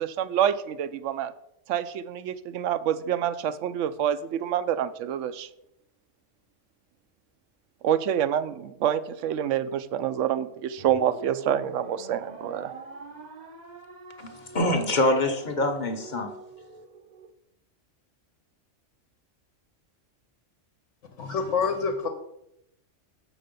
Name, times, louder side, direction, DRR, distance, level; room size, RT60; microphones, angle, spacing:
voice 1, 0.0-1.3 1.7-5.5 7.8-12.7, right 10 dB, 80° right, 14 dB, 0.9 m, -27 dB
sound 1, 10.8-17.3, right 3 dB, 40° right, 0.7 m, -44 dB
voice 2, 14.2-16.3, left 1 dB, 40° left, 5 dB, 1.0 m, -25 dB
voice 3, 21.2-22.1, left 5 dB, 75° left, 6 dB, 1.2 m, -27 dB
7.7 x 6.2 x 5.2 m, 0.80 s
omnidirectional pair, 1.3 m